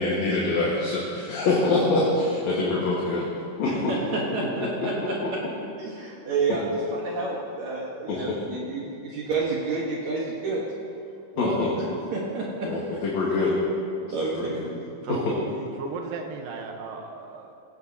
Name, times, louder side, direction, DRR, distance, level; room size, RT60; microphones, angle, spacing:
voice 1, 0.0-3.3 3.6-4.0 4.4-4.9 8.1-8.2 11.4-11.7 12.6-13.6 14.0-14.7 15.1-15.4, left 2 dB, 60° left, -5 dB, 2.6 m, -25 dB
voice 2, 3.7-5.1 5.8-6.6 6.9-10.6 11.4-11.6 12.1-12.7 14.1-14.6 15.2-15.4, right 3 dB, 60° right, -4 dB, 2.4 m, -29 dB
voice 3, 15.0-15.5 15.8-17.5, right 4 dB, 80° right, 3 dB, 2.7 m, -36 dB
17.0 x 16.5 x 2.8 m, 2.5 s
omnidirectional pair, 4.0 m